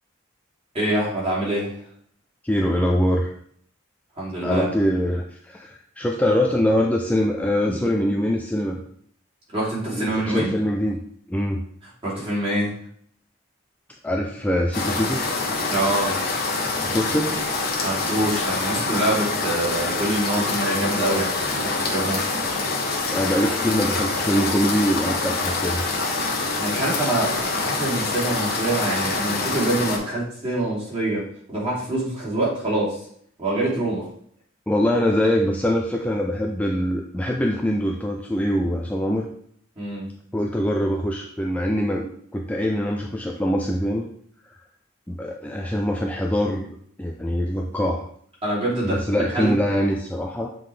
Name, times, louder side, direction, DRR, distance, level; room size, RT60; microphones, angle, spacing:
voice 1, 0.7-1.7 4.2-4.7 9.5-10.5 12.0-12.7 15.7-16.1 17.8-22.2 26.6-31.2 31.5-33.0 33.4-34.1 39.8-40.1 48.4-49.5, right 1 dB, 25° right, -7 dB, 2.7 m, -25 dB
voice 2, 2.4-3.3 4.4-8.8 9.9-11.0 11.3-11.6 14.0-15.2 16.8-17.3 23.1-25.8 34.7-39.3 40.3-44.1 45.1-48.0 48.8-50.5, equal, 5° left, 1 dB, 0.3 m, -23 dB
sound 1, 14.7-30.0, left 3 dB, 50° left, 1.1 m, -25 dB
7.4 x 3.9 x 3.3 m, 0.63 s
head